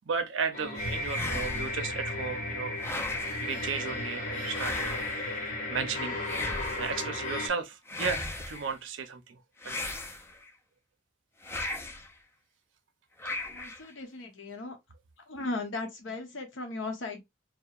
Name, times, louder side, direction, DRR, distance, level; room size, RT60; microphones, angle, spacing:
voice 1, 0.1-2.8 3.4-5.1 5.7-6.2 6.8-9.4 9.6-9.9, right 5 dB, 80° right, 0.5 m, -34 dB
sound 1, 0.5-7.5, left 2 dB, 40° left, 1.0 m, -34 dB
sound 2, 1.1-1.9 2.8-3.5 4.5-5.3 6.2-7.0 7.9-8.7 9.6-10.5 11.4-12.1 13.2-13.9, left 2 dB, 15° left, 0.3 m, -36 dB
voice 2, 13.5-14.8 15.3-17.2, left 2 dB, 90° left, 0.8 m, -37 dB
2.7 x 2.1 x 2.4 m
head